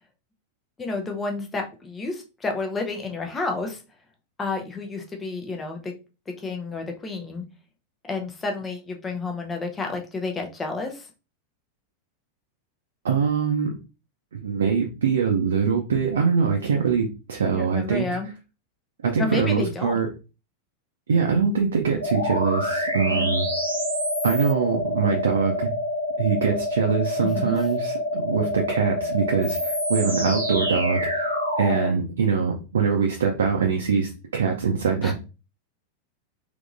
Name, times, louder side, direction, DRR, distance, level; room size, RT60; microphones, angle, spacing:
voice 1, 0.8-3.8 4.4-5.9 6.4-7.4 8.0-11.1 17.5-18.3 19.2-20.0 23.1-23.4 27.2-27.6 31.7-32.0 35.0-35.1, left 3 dB, 15° left, 3 dB, 0.7 m, -30 dB
voice 2, 13.0-13.7 14.3-18.1 19.0-20.1 21.1-23.5 24.2-25.7 26.2-35.1, right 6 dB, 65° right, 0 dB, 0.6 m, -23 dB
sound 1, 22.0-31.9, left 1 dB, 90° left, 1.0 m, -27 dB
3.6 x 2.9 x 2.5 m, 0.31 s
figure-of-eight pair, 90°, 0 cm